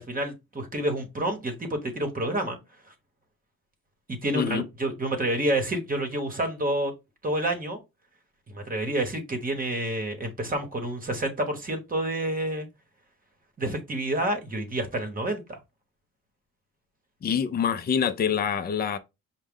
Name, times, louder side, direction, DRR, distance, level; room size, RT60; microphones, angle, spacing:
voice 1, 0.0-2.6 4.1-6.9 7.2-7.8 8.5-12.7 13.6-15.6, right 1 dB, 30° right, 1.0 m, -29 dB
voice 2, 17.2-19.0, left 7 dB, 30° left, 0.5 m, -26 dB
4.8 x 2.1 x 3.6 m
cardioid pair, 90°, 30 cm